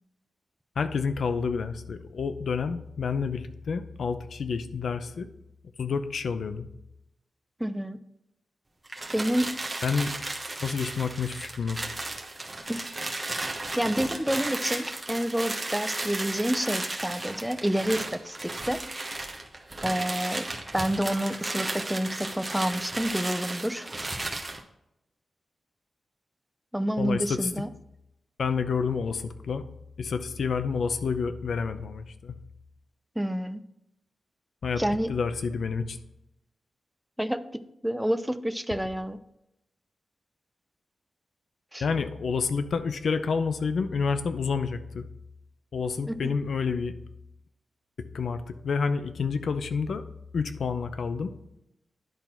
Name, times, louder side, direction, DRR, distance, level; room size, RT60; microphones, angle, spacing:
voice 1, 0.8-5.3 5.8-6.7 9.8-10.1 10.6-11.8 27.0-27.5 28.4-29.6 30.0-32.3 34.6-34.8 35.1-36.0 41.8-45.0 45.7-46.9 48.1-50.0 50.3-51.3, left 5 dB, 70° left, 10 dB, 0.6 m, -29 dB
voice 2, 7.6-8.0 9.1-9.5 12.7-12.9 13.8-18.8 19.8-20.5 20.7-24.1 26.7-27.7 33.2-33.6 34.8-35.1 37.2-39.2 41.7-41.8 46.1-46.3, equal, 5° right, 10 dB, 0.5 m, -29 dB
sound 1, 8.8-24.6, right 2 dB, 20° right, 1.1 m, -34 dB
10.5 x 4.0 x 4.4 m, 0.85 s
wide cardioid pair, 115°, 0 cm